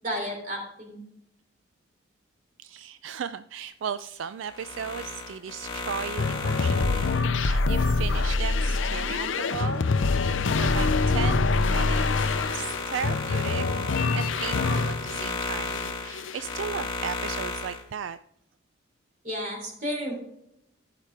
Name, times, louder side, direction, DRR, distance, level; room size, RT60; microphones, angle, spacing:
voice 1, 0.0-1.0 19.2-20.1, equal, 40° right, 1 dB, 3.4 m, -32 dB
voice 2, 2.6-13.7 14.1-18.2, right 7 dB, 75° right, 12 dB, 0.3 m, -36 dB
sound 1, 4.4-9.5 10.0-17.8, left 3 dB, 25° left, 1.7 m, -35 dB
sound 2, 6.2-15.3 15.6-16.5, left 3 dB, 80° left, 0.6 m, -25 dB
15.0 x 5.8 x 3.4 m, 0.77 s
head